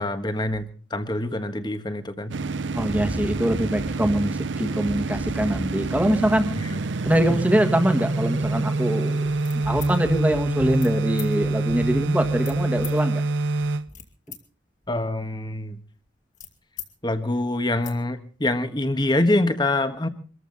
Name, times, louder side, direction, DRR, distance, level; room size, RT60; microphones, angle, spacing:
voice 1, 0.0-2.3 14.9-15.8 17.0-20.1, left 1 dB, 25° left, 9 dB, 1.5 m, -25 dB
sound 1, 2.3-13.9, right 3 dB, 85° right, 0.7 m, -26 dB
voice 2, 2.7-6.5 7.0-9.3 9.6-13.2, right 1 dB, 10° right, 7 dB, 1.7 m, -23 dB
sound 2, 9.4-10.0 10.7-10.9 11.2-11.3 12.4-13.0 13.6-14.4 14.7-16.9 17.3-17.4 17.6-18.0, left 10 dB, 40° left, 2.3 m, -41 dB
24.5 x 14.0 x 4.0 m, 0.39 s
head